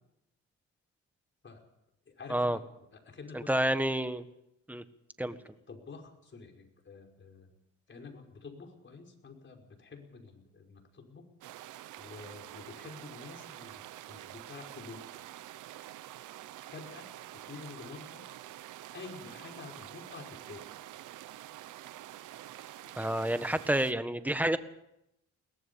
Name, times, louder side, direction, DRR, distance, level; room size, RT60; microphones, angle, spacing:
voice 1, 2.1-2.6 2.9-3.8 5.3-5.4 5.7-7.5 7.9-11.3 12.0-15.0 16.7-17.1 17.5-18.4 18.9-20.7, left 4 dB, 40° left, 3 dB, 5.6 m, -48 dB
voice 2, 3.3-4.2 4.7-4.8 5.2-5.4 23.0-24.6, right 1 dB, 5° right, 11 dB, 1.6 m, -29 dB
sound 1, 11.4-23.9, right 14 dB, 85° right, 1.0 m, -47 dB
22.0 x 18.5 x 7.2 m, 0.83 s
cardioid pair, 90°, 30 cm